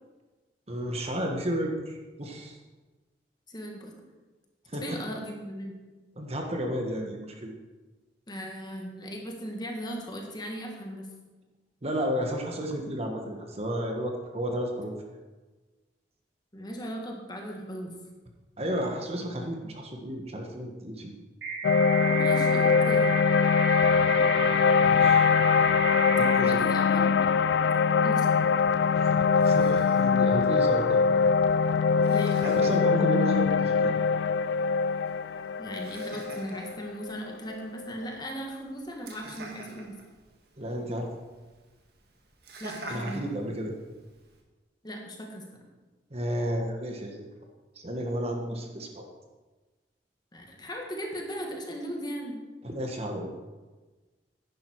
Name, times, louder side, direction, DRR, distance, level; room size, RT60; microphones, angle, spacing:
voice 1, 0.7-2.6 4.7-5.0 6.2-7.5 11.8-15.0 18.6-21.1 24.9-25.3 26.1-26.7 28.9-31.0 32.4-33.9 40.6-41.1 42.9-43.7 46.1-47.2 47.7-49.0 52.6-53.3, equal, 35° right, 2 dB, 1.4 m, -32 dB
voice 2, 3.5-3.9 4.8-5.8 8.3-11.1 16.5-17.9 22.1-23.1 26.2-27.3 28.0-28.4 32.1-32.5 35.6-40.0 42.6-43.2 44.8-45.4 50.3-52.4, equal, 25° left, 1 dB, 1.8 m, -37 dB
sound 1, 21.4-26.4, right 5 dB, 80° right, 3.8 m, -33 dB
sound 2, 21.6-37.9, left 5 dB, 70° left, 0.4 m, -23 dB
Laughter, 28.4-44.4, right 2 dB, 60° right, 1.8 m, -49 dB
10.5 x 10.5 x 4.7 m, 1.2 s
head